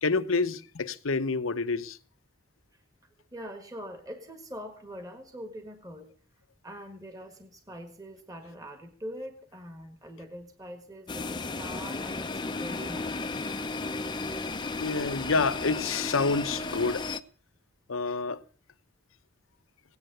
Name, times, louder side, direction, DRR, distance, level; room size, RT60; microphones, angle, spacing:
voice 1, 0.0-2.0 14.8-17.1 17.9-18.4, left 4 dB, 80° left, 0.9 m, -28 dB
voice 2, 3.3-6.1 6.6-13.5, equal, 15° right, 1.5 m, -43 dB
sound 1, 11.1-17.2, left 3 dB, 20° left, 0.6 m, -34 dB
17.0 x 9.7 x 6.6 m
head